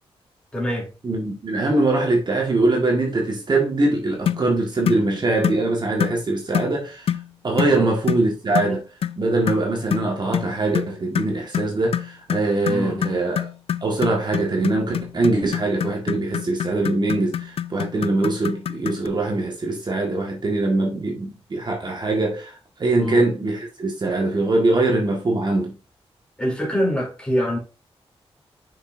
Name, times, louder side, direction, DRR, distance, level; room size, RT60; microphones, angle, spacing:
voice 1, 0.5-0.9 7.7-7.9 12.7-13.1 23.0-23.3 26.4-27.6, equal, 10° left, 3.2 m, -25 dB
voice 2, 1.0-7.2 7.4-8.8 9.2-13.5 13.8-25.7, right 2 dB, 45° right, 1.7 m, -22 dB
sound 1, 4.3-4.5 4.9-5.1 5.4-5.7 6.0-6.2 6.5-6.8 7.1-7.3 7.6-7.8 8.1-8.3 8.6-8.7 9.0-9.2 9.5-19.1, left 9 dB, 65° left, 0.4 m, -26 dB
6.7 x 5.5 x 2.7 m
wide cardioid pair, 90°, 10 cm